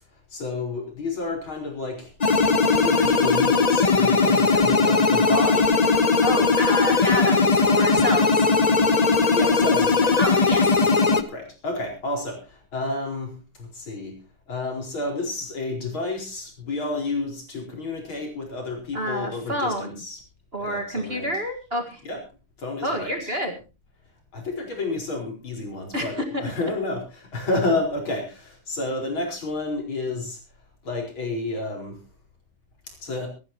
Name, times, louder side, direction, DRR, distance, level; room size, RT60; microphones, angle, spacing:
voice 1, 0.3-2.1 2.7-5.8 9.4-10.2 11.3-14.2 14.5-20.2 20.6-21.3 22.1-22.2 22.6-23.3 24.3-30.4 30.8-32.0 32.9-33.3, left 2 dB, 70° left, 1 dB, 5.4 m, -30 dB
sound 1, 2.2-11.2, left 4 dB, 85° left, 0.3 m, -19 dB
voice 2, 6.2-8.5 10.2-10.7 18.9-20.0 20.5-22.0 22.8-23.5 25.9-26.4, equal, 30° right, 4 dB, 1.8 m, -28 dB
25.0 x 11.5 x 3.0 m, 0.31 s
omnidirectional pair, 2.4 m